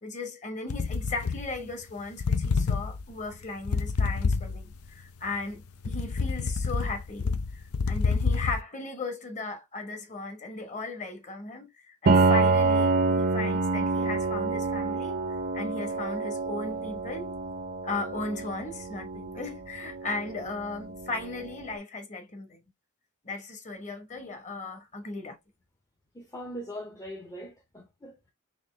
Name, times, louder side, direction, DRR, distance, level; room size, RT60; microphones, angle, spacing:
voice 1, 0.0-17.3 17.8-22.6 23.2-25.4, left 3 dB, 35° left, 1.1 m, -37 dB
sound 1, 0.7-1.9 2.2-4.9 5.3-8.6, left 4 dB, 90° left, 0.5 m, -28 dB
Piano, 12.1-21.6, right 3 dB, 45° right, 0.5 m, -27 dB
voice 2, 26.1-28.3, equal, 15° left, 0.6 m, -41 dB
4.3 x 3.1 x 3.2 m
head